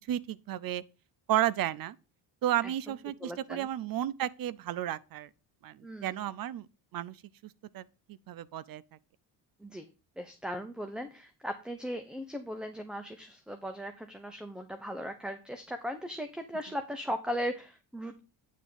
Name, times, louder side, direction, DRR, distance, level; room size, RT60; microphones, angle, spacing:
voice 1, 0.1-0.8 1.3-2.0 2.4-5.3 5.6-6.7 6.9-7.2 7.4-8.8, right 12 dB, 55° right, 0.6 m, -33 dB
voice 2, 2.6-3.7 5.8-6.3 9.6-9.9 10.2-18.2, equal, ahead, 0.7 m, -38 dB
9.5 x 3.6 x 7.0 m
cardioid pair, 110°, 41 cm